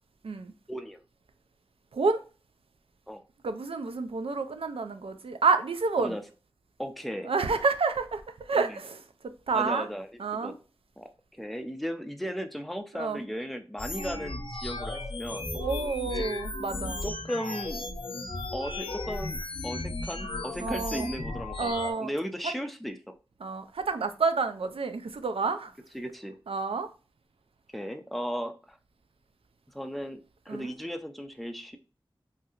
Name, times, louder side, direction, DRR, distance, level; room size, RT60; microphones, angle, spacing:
voice 1, 0.7-1.0 3.1-3.2 6.0-6.2 6.8-7.3 8.5-8.8 9.5-10.6 11.0-11.1 11.4-15.4 16.1-16.3 17.0-17.9 18.5-23.1 25.9-26.4 27.7-28.8 29.7-31.8, equal, ahead, 0.4 m, -36 dB
voice 2, 3.4-6.1 7.2-8.2 8.5-9.0 9.5-9.9 10.2-10.5 13.0-13.2 15.5-17.1 20.6-21.1 21.6-22.1 23.4-25.7 26.5-26.9 30.5-30.7, right 4 dB, 90° right, 0.4 m, -29 dB
sound 1, 13.8-21.9, left 2 dB, 65° left, 0.6 m, -35 dB
3.1 x 2.7 x 2.4 m
wide cardioid pair, 50°, 9 cm